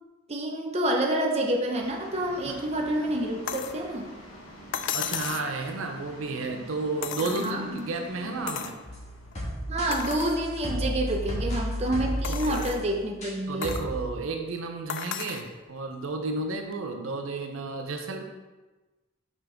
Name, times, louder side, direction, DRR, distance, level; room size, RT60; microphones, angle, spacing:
voice 1, 0.3-4.1 7.4-7.9 9.7-13.7, right 1 dB, 30° right, 1 dB, 0.7 m, -28 dB
sound 1, 1.8-10.1, equal, 80° left, 1.1 m, -47 dB
sound 2, 3.5-3.8 4.7-5.5 7.0-7.8 8.5-8.8 9.3-9.4 9.9-10.4 11.0-11.1 12.2-12.9 13.6-13.9 14.9-15.5 16.7-16.8, left 9 dB, 60° left, 0.3 m, -34 dB
voice 2, 4.9-8.8 12.3-12.7 13.5-18.2, right 3 dB, 75° right, 4 dB, 0.6 m, -32 dB
sound 3, 8.9-13.3 13.6-14.1, equal, 35° left, 1.5 m, -33 dB
5.7 x 5.3 x 3.5 m, 1.2 s
head